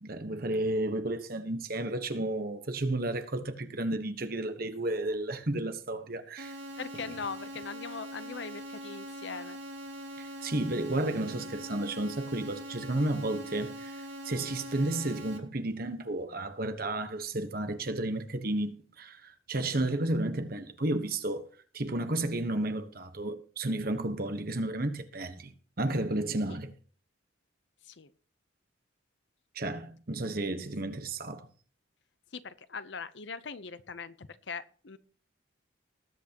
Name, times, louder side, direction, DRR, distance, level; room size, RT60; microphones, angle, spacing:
voice 1, 0.0-6.6 10.2-21.5 21.7-26.7 29.5-31.5, right 1 dB, 50° right, 1.2 m, -32 dB
sound 1, 6.4-15.4, equal, 65° right, 2.7 m, -42 dB
voice 2, 6.8-9.6 26.5-26.6 27.8-28.1 32.3-35.0, left 5 dB, 60° left, 0.8 m, -41 dB
20.0 x 8.3 x 3.0 m
head